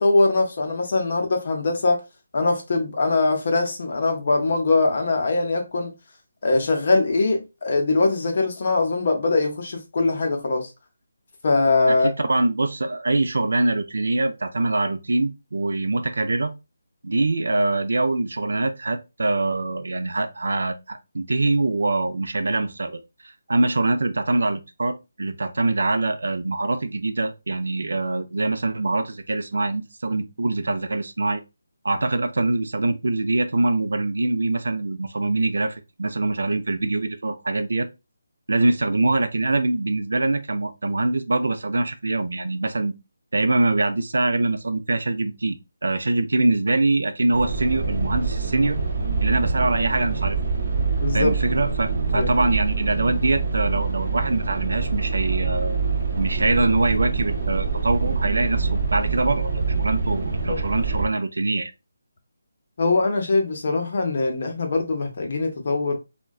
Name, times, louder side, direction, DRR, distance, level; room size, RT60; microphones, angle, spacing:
voice 1, 0.0-2.0 2.3-5.9 6.4-10.7 11.4-12.1 51.0-51.3 52.1-52.3 60.5-60.6 62.8-66.0, left 3 dB, 35° left, 0.6 m, -22 dB
voice 2, 11.9-16.5 17.0-31.4 31.8-37.9 38.5-42.9 43.3-45.6 45.8-48.8 49.2-50.4 51.1-55.8 56.2-61.7, right 2 dB, 70° right, 0.4 m, -24 dB
sound 1, 47.3-61.0, right 4 dB, 30° right, 0.7 m, -25 dB
3.6 x 2.2 x 2.3 m
hypercardioid pair, 180°, 0 cm